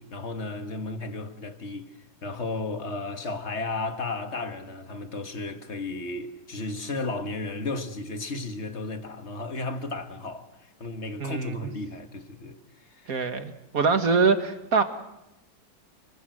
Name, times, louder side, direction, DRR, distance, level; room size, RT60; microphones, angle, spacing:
voice 1, 0.0-1.9 2.2-10.5 10.8-12.6 12.9-13.2, left 3 dB, 35° left, 1.9 m, -34 dB
voice 2, 11.2-11.7 13.1-14.8, right 4 dB, 50° right, 2.1 m, -24 dB
29.5 x 21.0 x 7.8 m
omnidirectional pair, 2.1 m